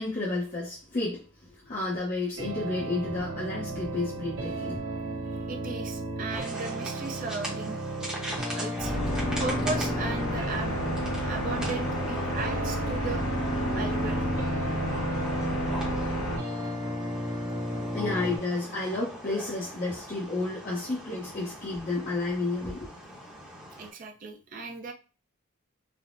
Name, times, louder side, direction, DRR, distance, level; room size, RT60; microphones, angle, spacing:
voice 1, 0.0-4.8 17.9-22.9, left 2 dB, 40° left, 0.6 m, -31 dB
sound 1, 2.4-18.4, right 1 dB, 80° right, 0.8 m, -34 dB
voice 2, 5.5-7.8 8.5-8.9 9.4-10.8 11.2-13.3 13.8-14.3 23.8-24.9, right 3 dB, 40° right, 0.5 m, -36 dB
sound 2, 6.3-23.9, right 1 dB, 5° right, 0.7 m, -41 dB
sound 3, 8.8-16.4, left 1 dB, 80° left, 0.6 m, -30 dB
3.3 x 2.0 x 2.5 m
head